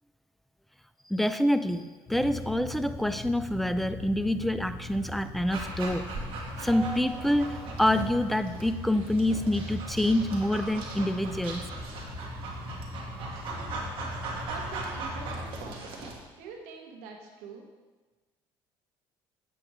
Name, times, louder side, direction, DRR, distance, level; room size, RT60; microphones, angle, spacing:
voice 1, 1.1-6.1 6.6-11.7, left 1 dB, ahead, 11 dB, 0.4 m, -27 dB
sound 1, 2.1-15.8, left 1 dB, 25° left, 1.4 m, -40 dB
Dog, 5.5-16.2, right 3 dB, 60° right, 1.6 m, -39 dB
voice 2, 13.4-13.8 14.5-15.9 16.4-17.7, right 4 dB, 90° right, 1 dB, 1.4 m, -45 dB
8.5 x 7.8 x 3.2 m, 1.3 s
cardioid pair, 105°, 10 cm